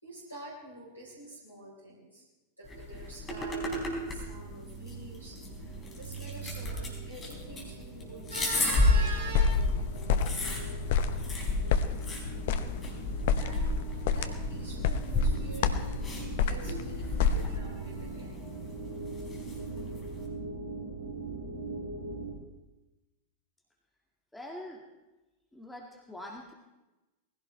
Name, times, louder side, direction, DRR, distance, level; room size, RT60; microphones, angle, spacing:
voice 1, 0.0-2.2 2.6-9.4 13.3-16.0 16.4-18.6, right 3 dB, 85° left, -4 dB, 4.2 m, -45 dB
sound 1, 2.6-20.2, left 2 dB, 20° left, 4.3 m, -33 dB
sound 2, 3.2-22.3, right 3 dB, 65° right, 2.8 m, -42 dB
sound 3, 9.0-17.6, left 6 dB, 55° left, 0.9 m, -31 dB
voice 2, 24.3-24.8 25.5-26.5, left 1 dB, 5° left, -1 dB, 1.9 m, -44 dB
20.5 x 16.0 x 3.3 m, 1.1 s
figure-of-eight pair, 90°, 0 cm